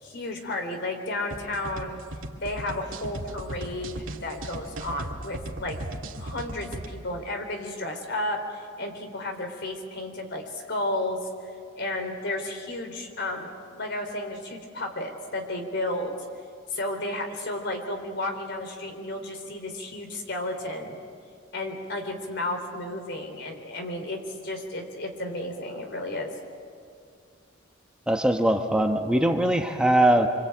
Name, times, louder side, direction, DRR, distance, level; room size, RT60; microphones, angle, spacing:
voice 1, 0.0-2.0 2.4-5.8 6.2-11.2 11.8-16.2 16.7-21.0 21.5-26.3, left 1 dB, 60° left, 5 dB, 3.8 m, -32 dB
sound 1, 1.3-6.9, right 1 dB, 90° right, 2.2 m, -37 dB
voice 2, 28.1-30.3, right 1 dB, 5° right, 3 dB, 1.1 m, -21 dB
25.5 x 25.5 x 8.9 m, 2.3 s
head